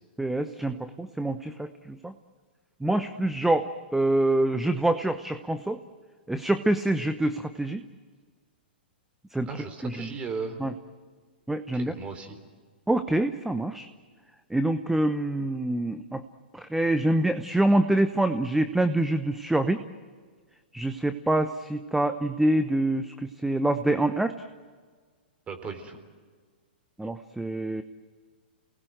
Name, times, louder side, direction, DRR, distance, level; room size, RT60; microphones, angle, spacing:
voice 1, 0.2-2.1 2.8-5.8 6.3-7.8 9.3-9.5 9.8-10.1 10.6-10.7 11.5-11.9 12.9-13.9 14.5-16.2 16.5-19.8 20.7-24.5 27.0-27.8, right 1 dB, 5° right, 10 dB, 0.9 m, -26 dB
voice 2, 9.5-10.6 11.7-12.4 25.5-26.0, right 5 dB, 20° right, 6 dB, 3.9 m, -36 dB
28.5 x 20.0 x 7.9 m, 1.5 s
hypercardioid pair, 120°, 6 cm